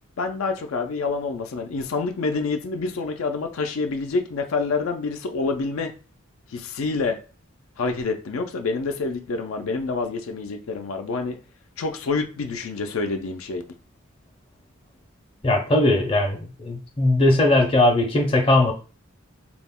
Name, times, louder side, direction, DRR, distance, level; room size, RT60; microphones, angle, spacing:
voice 1, 0.2-5.9 6.5-7.2 7.8-11.4 11.8-13.6, left 4 dB, 80° left, 0.4 m, -27 dB
voice 2, 15.4-18.7, left 1 dB, 25° left, 0.5 m, -19 dB
2.3 x 2.0 x 3.5 m
head